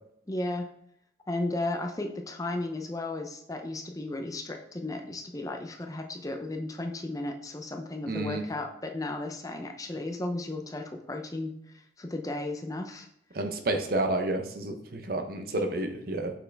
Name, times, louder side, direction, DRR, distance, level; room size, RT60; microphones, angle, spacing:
voice 1, 0.3-0.7 1.3-13.1 15.5-15.6, left 2 dB, 20° left, 4 dB, 0.6 m, -34 dB
voice 2, 8.1-8.4 13.3-16.3, right 2 dB, 50° right, 6 dB, 0.8 m, -30 dB
6.2 x 5.9 x 3.4 m, 0.75 s
head